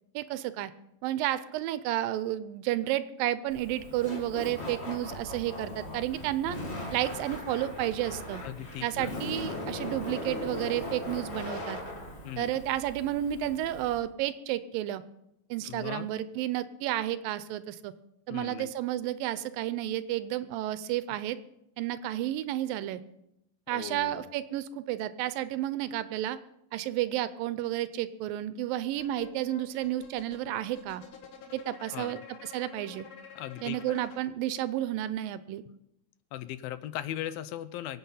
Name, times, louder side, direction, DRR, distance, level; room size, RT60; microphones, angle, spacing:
voice 1, 0.1-0.7 1.0-6.6 6.9-8.4 8.8-11.8 12.4-15.0 15.5-17.9 18.3-21.4 21.8-23.0 23.7-26.4 26.7-31.0 31.5-33.1 33.6-35.6, right 13 dB, 80° right, 14 dB, 2.3 m, -31 dB
Laughter, 3.5-14.0, left 1 dB, 25° left, 1.7 m, -39 dB
voice 2, 8.4-9.6 12.2-12.5 15.6-16.1 18.3-18.7 23.7-24.3 31.9-32.2 33.4-34.1 36.3-38.0, left 12 dB, 85° left, 14 dB, 2.5 m, -39 dB
sound 1, 28.9-34.2, left 6 dB, 65° left, 2.9 m, -49 dB
23.0 x 8.7 x 5.6 m, 0.83 s
omnidirectional pair, 4.2 m